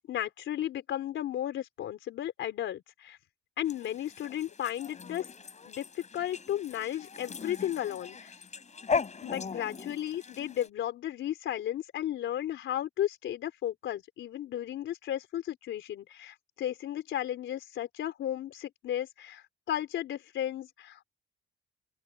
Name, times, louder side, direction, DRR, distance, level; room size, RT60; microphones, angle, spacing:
voice 1, 0.1-3.2 3.6-5.3 5.7-8.3 9.2-21.0, left 11 dB, 75° left, 4.1 m, -34 dB
sound 1, 3.7-10.7, left 5 dB, 35° left, 5.3 m, -38 dB
open air
cardioid pair, 90°, 20 cm